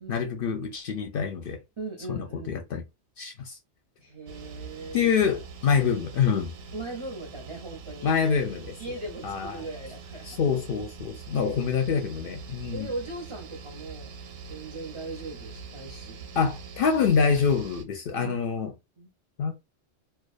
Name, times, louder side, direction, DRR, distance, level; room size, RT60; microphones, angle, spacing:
voice 1, 0.1-1.6 2.1-2.8 3.2-3.6 4.9-6.5 8.0-8.8 9.2-9.6 10.3-12.9 16.4-18.7 19.4-19.5, left 6 dB, 60° left, 0.6 m, -26 dB
voice 2, 1.8-2.6 4.0-5.1 6.7-8.1 8.8-10.4 11.3-11.7 12.7-14.1 14.5-16.3 18.1-18.3 19.0-19.1, right 2 dB, 35° right, 0.6 m, -39 dB
sound 1, 4.3-17.8, right 5 dB, 65° right, 0.7 m, -43 dB
2.4 x 2.2 x 2.3 m
omnidirectional pair, 1.2 m